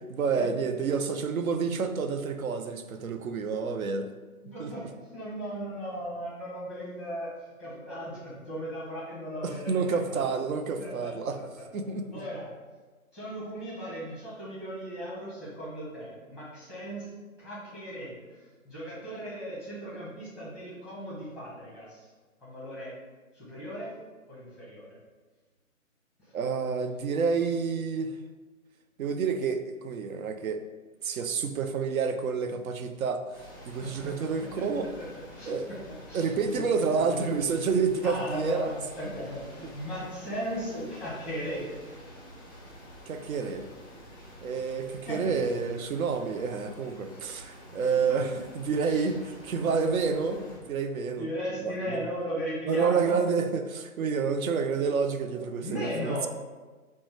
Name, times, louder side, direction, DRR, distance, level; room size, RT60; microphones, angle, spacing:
voice 1, 0.1-4.1 4.6-4.7 9.4-11.4 11.7-12.2 26.3-28.1 29.0-30.6 31.0-33.2 33.7-34.9 35.5-35.6 36.1-38.7 43.1-43.7 44.4-51.3 51.6-52.1 52.7-56.3, right 5 dB, 70° right, 7 dB, 0.5 m, -29 dB
voice 2, 4.4-10.3 10.8-11.6 12.1-12.5 13.1-17.1 17.4-22.1 22.4-22.9 23.3-24.0 24.3-25.0 33.8-34.1 34.4-34.6 35.0-35.1 35.3-35.8 36.1-36.7 36.9-37.7 38.0-41.7 44.2-44.3 45.0-45.4 48.8-49.1 49.6-49.9 51.2-53.2 55.6-56.3, equal, ahead, -8 dB, 0.7 m, -37 dB
sound 1, 33.3-50.6, equal, 15° left, 0.4 m, -49 dB
5.1 x 2.1 x 3.1 m, 1.3 s
figure-of-eight pair, 135°, 43 cm